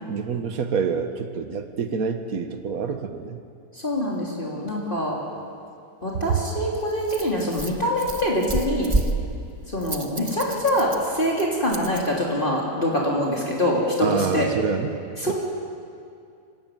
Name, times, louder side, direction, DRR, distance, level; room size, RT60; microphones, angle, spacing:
voice 1, 0.1-3.4 6.3-6.4 14.0-15.0 15.3-15.4, right 6 dB, 60° right, 7 dB, 1.8 m, -26 dB
voice 2, 3.8-5.2 6.0-9.0 9.7-14.5 15.2-15.3, left 1 dB, 30° left, -4 dB, 3.5 m, -24 dB
Rattle, 6.0-12.0, right 2 dB, 20° right, 1.2 m, -31 dB
25.0 x 18.0 x 9.2 m, 2.4 s
omnidirectional pair, 1.7 m